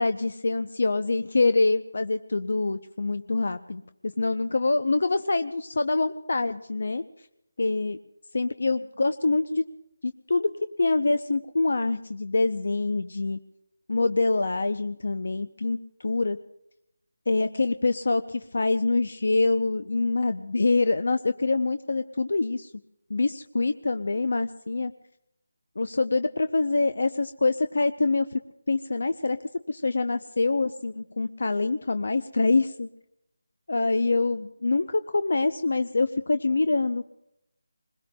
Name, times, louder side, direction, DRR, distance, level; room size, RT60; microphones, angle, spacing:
voice 1, 0.0-7.1 7.6-8.0 8.3-9.7 10.0-10.5 10.8-13.4 13.9-15.8 16.0-16.4 17.3-22.7 23.1-24.9 25.8-28.4 28.7-32.9 33.7-37.1, left 3 dB, 65° left, 10 dB, 0.5 m, -25 dB
26.0 x 21.0 x 2.2 m, 0.82 s
figure-of-eight pair, 170°, 0 cm